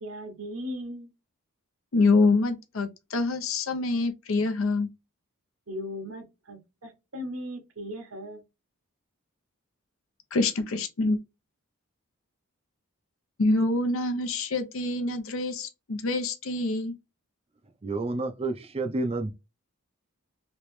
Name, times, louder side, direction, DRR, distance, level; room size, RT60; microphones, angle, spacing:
voice 1, 0.0-1.1 5.7-8.4, equal, 70° right, 1.2 m, -38 dB
voice 2, 1.9-4.9 10.3-11.2 13.4-16.9, left 3 dB, 65° left, 0.7 m, -25 dB
voice 3, 17.8-19.3, right 2 dB, 25° right, 0.5 m, -29 dB
3.2 x 3.0 x 3.1 m
head